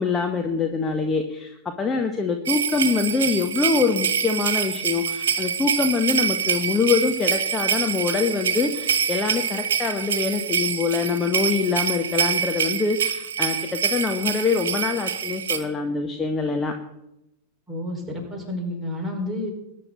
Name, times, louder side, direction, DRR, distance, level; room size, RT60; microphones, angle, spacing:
voice 1, 0.0-16.7, left 4 dB, 15° left, 4 dB, 1.4 m, -24 dB
sound 1, 2.5-15.6, right 7 dB, 60° right, 1.8 m, -25 dB
voice 2, 17.7-19.5, left 1 dB, 5° right, -3 dB, 5.0 m, -30 dB
21.0 x 10.0 x 4.1 m, 0.86 s
figure-of-eight pair, 90°, 0 cm